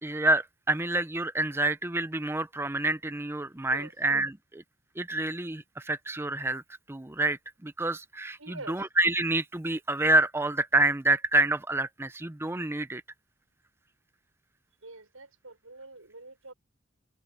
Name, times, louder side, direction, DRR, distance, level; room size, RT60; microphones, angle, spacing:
voice 1, 0.0-4.6 5.0-6.6 6.9-13.0, right 2 dB, 10° right, 0.6 m, -28 dB
voice 2, 8.4-8.8 14.8-16.5, right 2 dB, 85° right, 6.7 m, -45 dB
head